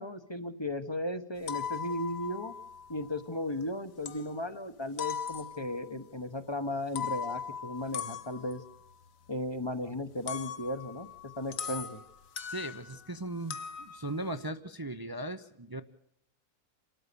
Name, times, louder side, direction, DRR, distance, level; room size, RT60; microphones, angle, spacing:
voice 1, 0.0-2.6 2.9-8.6 9.3-11.1 11.4-12.0, left 1 dB, 20° left, 10 dB, 0.8 m, -36 dB
sound 1, 1.4-3.7 4.1-4.6 5.0-5.9 6.8-13.1 13.5-14.5, left 7 dB, 60° left, 1.4 m, -40 dB
voice 2, 12.5-15.8, right 1 dB, 25° right, 10 dB, 0.4 m, -38 dB
29.0 x 13.5 x 6.9 m, 0.72 s
omnidirectional pair, 1.7 m